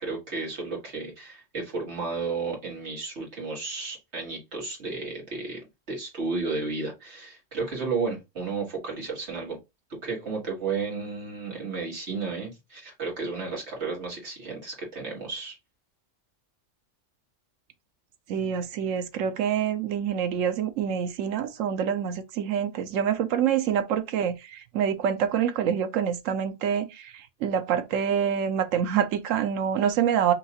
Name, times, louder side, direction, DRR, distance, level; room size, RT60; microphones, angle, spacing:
voice 1, 0.0-5.6 5.9-9.6 10.0-15.6, right 4 dB, 60° right, 2.0 m, -33 dB
voice 2, 18.3-30.3, right 8 dB, 85° right, 1.0 m, -26 dB
5.6 x 2.7 x 2.8 m
omnidirectional pair, 1.3 m